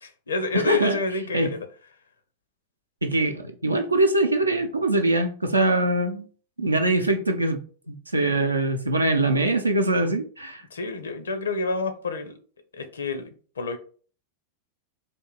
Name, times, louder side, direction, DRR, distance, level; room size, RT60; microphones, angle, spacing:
voice 1, 0.0-1.7 10.7-12.4 12.7-13.3 13.6-13.8, left 4 dB, 70° left, 0.6 m, -28 dB
voice 2, 0.5-1.0 1.3-1.5 3.0-6.3 6.6-7.6 7.9-10.6, right 2 dB, 80° right, 0.6 m, -23 dB
3.5 x 2.7 x 4.0 m
figure-of-eight pair, 90°, 0 cm